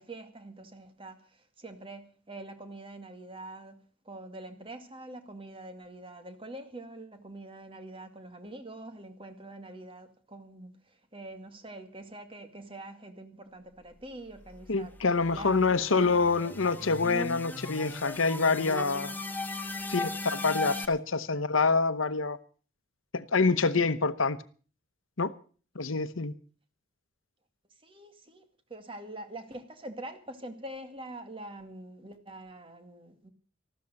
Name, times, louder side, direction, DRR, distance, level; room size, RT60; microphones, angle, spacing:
voice 1, 0.0-15.0 15.3-16.4 27.8-33.3, right 1 dB, 25° right, 2.1 m, -45 dB
sound 1, 14.5-20.9, left 2 dB, 10° left, 1.2 m, -38 dB
voice 2, 14.7-19.2 19.9-22.4 23.1-24.4 25.2-25.3 25.7-26.3, left 4 dB, 75° left, 1.0 m, -26 dB
14.5 x 13.0 x 6.5 m
head